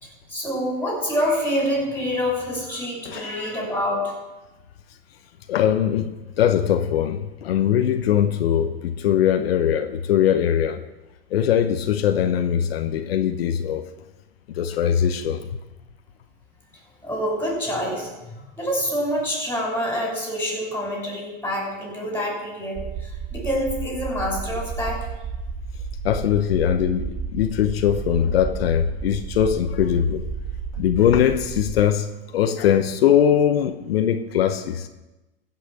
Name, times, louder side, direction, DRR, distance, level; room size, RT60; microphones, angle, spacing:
voice 1, 0.0-4.1 17.0-18.1 18.6-25.1, equal, 5° left, -2 dB, 5.6 m, -26 dB
voice 2, 5.5-10.8 11.3-13.8 14.5-15.4 26.0-30.2 30.8-32.1 32.3-34.9, left 9 dB, 80° left, 7 dB, 1.0 m, -21 dB
sound 1, 22.8-31.8, right 5 dB, 30° right, 1.7 m, -32 dB
15.5 x 6.0 x 7.4 m, 1.1 s
hypercardioid pair, 125°, 30 cm